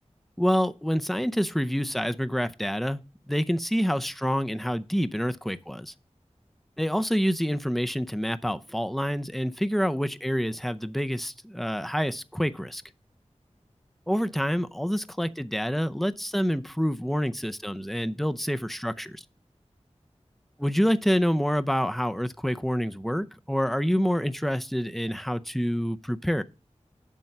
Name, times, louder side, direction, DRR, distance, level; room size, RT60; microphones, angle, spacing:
voice 1, 0.4-3.0 3.3-5.9 6.8-12.8 14.1-19.2 20.6-26.4, equal, ahead, 0.6 m, -27 dB
7.6 x 5.4 x 5.8 m
wide cardioid pair, 55°, 12 cm